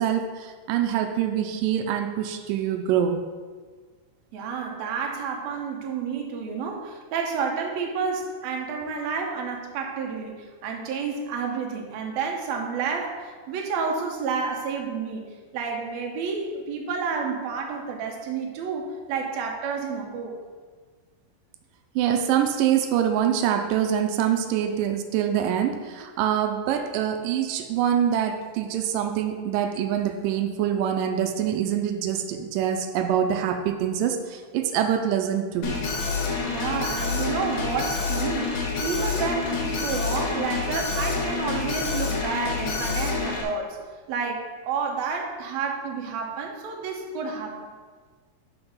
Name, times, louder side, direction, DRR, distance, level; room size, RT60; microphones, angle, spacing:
voice 1, 0.0-3.2 22.0-35.7, right 9 dB, 90° right, 6 dB, 2.3 m, -25 dB
voice 2, 4.3-15.2 15.5-20.4 36.5-43.8 44.1-47.7, right 5 dB, 65° right, 1 dB, 2.0 m, -30 dB
Alarm, 35.6-43.4, left 4 dB, 80° left, 2.8 m, -28 dB
5.9 x 5.9 x 5.4 m, 1.5 s
omnidirectional pair, 3.8 m